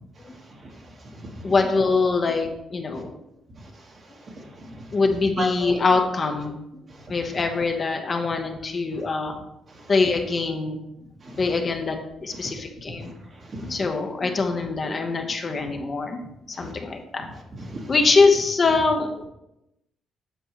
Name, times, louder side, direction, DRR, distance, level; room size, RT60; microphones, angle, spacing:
voice 1, 0.3-1.5 2.9-3.0 3.6-3.9 4.2-4.8 5.4-5.8 6.9-7.1 8.9-9.0 9.7-9.9 11.2-11.4 12.4-12.5 12.9-13.7 16.5-16.7 17.6-17.9, right 1 dB, 45° right, 1 dB, 1.4 m, -37 dB
voice 2, 1.4-3.2 4.6-6.8 7.1-9.3 9.9-10.9 11.4-13.1 13.6-16.2 16.5-17.3 17.9-19.2, left 4 dB, 40° left, 4 dB, 0.9 m, -23 dB
8.0 x 5.4 x 3.0 m, 0.87 s
cardioid pair, 90°, 0 cm